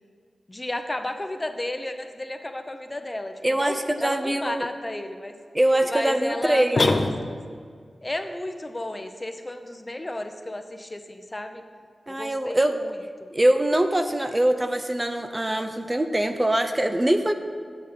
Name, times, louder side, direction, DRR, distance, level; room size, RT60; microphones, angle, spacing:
voice 1, 0.5-5.3 5.9-7.0 7.3-7.4 8.0-11.6 12.1-13.0, left 1 dB, 25° left, 7 dB, 0.7 m, -33 dB
voice 2, 3.4-4.7 5.5-7.0 12.1-12.8 13.3-17.3, right 1 dB, 20° right, 6 dB, 0.6 m, -23 dB
sound 1, 6.8-7.7, left 3 dB, 60° left, 0.6 m, -24 dB
8.8 x 7.3 x 5.3 m, 2.1 s
cardioid pair, 55°, 0 cm